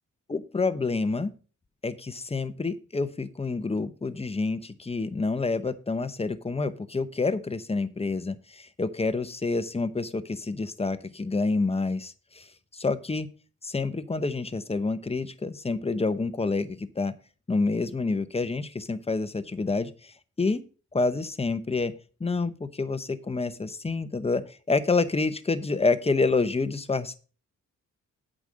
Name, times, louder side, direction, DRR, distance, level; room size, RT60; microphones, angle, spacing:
voice 1, 0.3-1.3 1.8-12.5 12.7-13.3 13.6-17.1 17.5-20.6 20.9-21.9 22.2-24.4 24.7-27.2, left 3 dB, 20° left, 12 dB, 0.9 m, -28 dB
8.2 x 5.0 x 6.2 m, 0.37 s
cardioid pair, 80°, 30 cm